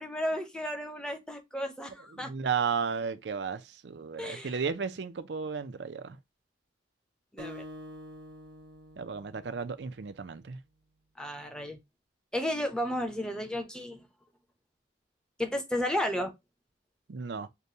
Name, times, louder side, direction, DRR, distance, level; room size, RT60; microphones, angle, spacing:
voice 1, 0.0-2.3 4.2-4.6 7.3-7.6 11.2-11.8 12.3-14.0 15.4-16.3, left 1 dB, 5° left, 0.7 m, -33 dB
voice 2, 2.1-6.2 9.0-10.6 17.1-17.5, right 6 dB, 70° right, 0.5 m, -34 dB
Acoustic guitar, 7.4-10.1, left 1 dB, 90° right, 1.2 m, -47 dB
6.6 x 2.2 x 2.7 m
head